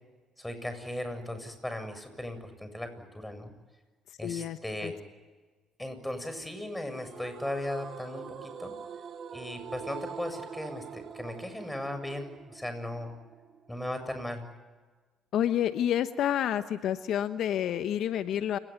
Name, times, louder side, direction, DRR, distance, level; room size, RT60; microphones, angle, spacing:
voice 1, 0.4-2.9 3.1-3.5 4.2-5.0 5.8-8.7 9.3-13.1 13.7-14.4, left 1 dB, 10° left, 8 dB, 7.6 m, -37 dB
voice 2, 4.2-4.9 15.3-18.6, left 10 dB, 70° left, 11 dB, 1.1 m, -29 dB
sound 1, 6.9-14.0, right 7 dB, 55° right, 2.2 m, -44 dB
29.5 x 19.5 x 9.5 m, 1.3 s
supercardioid pair, 60°, 0 cm